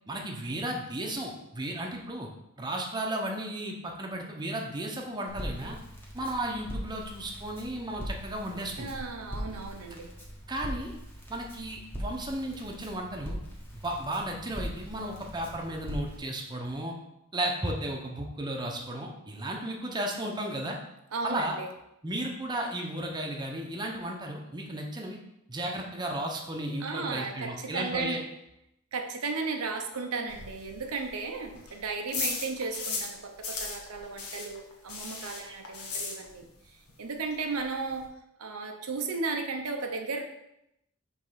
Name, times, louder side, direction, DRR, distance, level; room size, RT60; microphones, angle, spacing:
voice 1, 0.1-2.3 2.6-5.8 6.1-8.9 10.5-10.9 11.3-13.4 13.8-17.0 17.3-20.8 21.2-21.5 22.0-25.2 25.5-28.2 35.4-35.6, right 1 dB, 20° right, 0 dB, 0.9 m, -34 dB
Crackle, 5.3-16.2, equal, 10° left, 1.3 m, -41 dB
voice 2, 8.8-10.1 21.1-21.7 26.8-28.2 28.9-38.1 38.4-40.2, right 4 dB, 80° right, 3 dB, 0.7 m, -35 dB
sound 1, 30.3-33.2 33.4-36.6 36.9-37.0 37.3-37.4 37.6-38.1, left 4 dB, 80° left, 1.3 m, -36 dB
5.3 x 3.6 x 5.7 m, 0.83 s
head